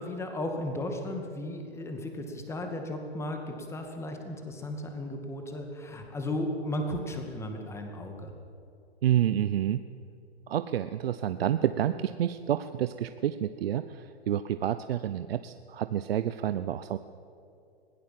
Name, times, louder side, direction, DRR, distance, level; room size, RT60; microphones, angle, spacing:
voice 1, 0.0-8.3, left 1 dB, 10° left, 4 dB, 2.2 m, -35 dB
voice 2, 9.0-9.8 10.5-17.0, right 11 dB, 65° right, 11 dB, 0.8 m, -29 dB
21.5 x 16.0 x 7.7 m, 2.6 s
hypercardioid pair, 140°, 32 cm